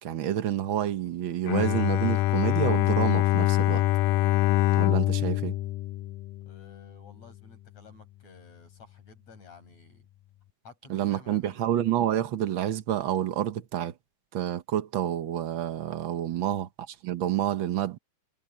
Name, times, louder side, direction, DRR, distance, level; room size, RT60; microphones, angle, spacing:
voice 1, 0.0-3.8 4.7-5.5 10.9-13.9 14.3-18.0, right 11 dB, 75° right, 1.1 m, -28 dB
Bowed string instrument, 1.5-6.7, left 15 dB, 85° left, 2.1 m, -24 dB
voice 2, 6.4-10.1 10.6-11.6 16.3-16.6, left 4 dB, 55° left, 7.9 m, -53 dB
omnidirectional pair, 3.7 m